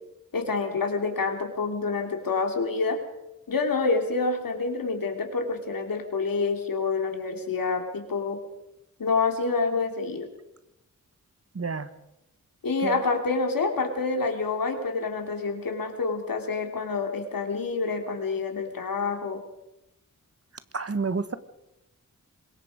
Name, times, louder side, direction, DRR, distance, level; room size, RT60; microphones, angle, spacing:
voice 1, 0.3-3.0 3.5-8.4 9.0-10.3 12.6-19.4, left 4 dB, 85° left, 4 dB, 3.3 m, -27 dB
voice 2, 11.5-11.9 12.8-13.0 20.7-21.4, right 4 dB, 45° right, 12 dB, 1.4 m, -29 dB
25.5 x 21.5 x 5.1 m, 0.92 s
cardioid pair, 60°, 34 cm